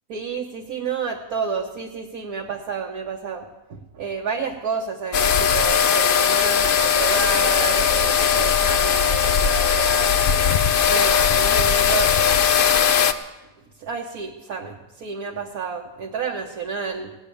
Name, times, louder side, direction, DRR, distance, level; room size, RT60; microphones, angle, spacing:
voice 1, 0.1-10.2 10.9-12.4 13.8-17.1, right 5 dB, 60° right, 0 dB, 1.4 m, -30 dB
sound 1, 5.1-13.1, left 7 dB, 85° left, 0.4 m, -19 dB
16.5 x 7.8 x 8.4 m, 1.0 s
omnidirectional pair, 1.8 m